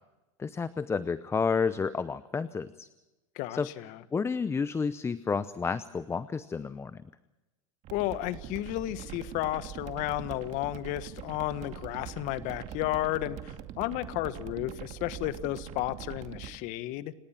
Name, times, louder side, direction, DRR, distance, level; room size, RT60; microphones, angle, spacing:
voice 1, 0.4-2.9 3.5-3.7 4.1-7.0, left 5 dB, 15° left, 15 dB, 0.7 m, -30 dB
voice 2, 3.3-4.0 7.9-17.1, left 16 dB, 50° left, 13 dB, 1.6 m, -33 dB
sound 1, 7.8-16.6, right 11 dB, 45° right, 2.2 m, -43 dB
30.0 x 18.5 x 5.9 m, 1.0 s
hypercardioid pair, 105°, 16 cm